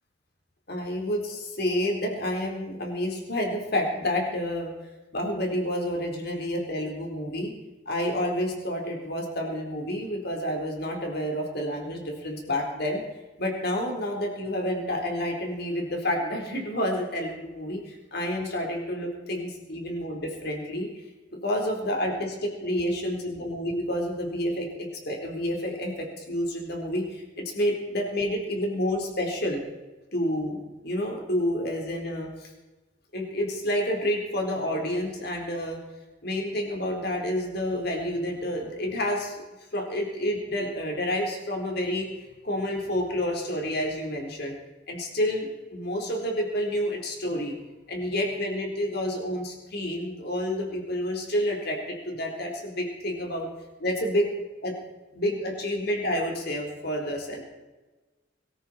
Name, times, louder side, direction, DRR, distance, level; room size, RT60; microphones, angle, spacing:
voice 1, 0.7-4.7 5.1-7.5 7.9-13.0 13.4-20.9 21.4-29.6 30.1-32.5 33.1-35.8 36.2-39.4 39.7-44.5 44.9-47.5 47.9-53.5 53.8-54.2 54.6-54.7 55.1-57.4, left 1 dB, 55° left, 1 dB, 4.2 m, -29 dB
22.5 x 13.5 x 4.5 m, 1.2 s
head